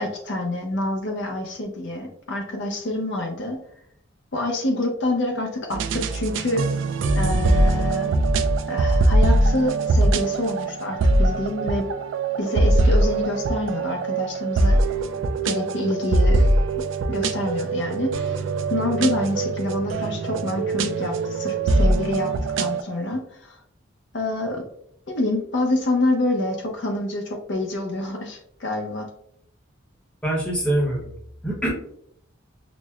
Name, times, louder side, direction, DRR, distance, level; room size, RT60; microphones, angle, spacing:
voice 1, 0.0-3.6 4.3-6.7 7.2-8.1 8.7-11.9 12.4-14.8 15.4-16.4 17.1-18.3 18.7-22.3 22.6-23.6 24.1-24.6 25.1-29.1, left 1 dB, 60° left, 1 dB, 0.6 m, -27 dB
sound 1, 5.7-22.8, right 2 dB, 70° right, 0.3 m, -22 dB
voice 2, 30.2-31.1 31.4-31.7, right 1 dB, 5° left, -4 dB, 0.9 m, -24 dB
6.0 x 2.0 x 2.3 m, 0.69 s
head